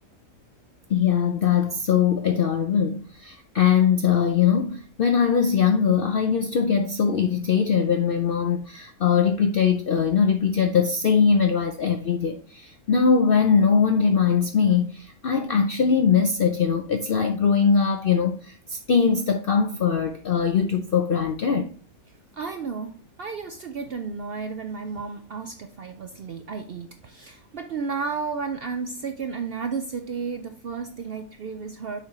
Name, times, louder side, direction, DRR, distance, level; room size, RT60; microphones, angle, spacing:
voice 1, 0.9-21.7, left 6 dB, 65° left, 0.5 m, -21 dB
voice 2, 22.3-32.0, right 5 dB, 65° right, 0.6 m, -33 dB
6.7 x 4.6 x 3.6 m
omnidirectional pair, 1.5 m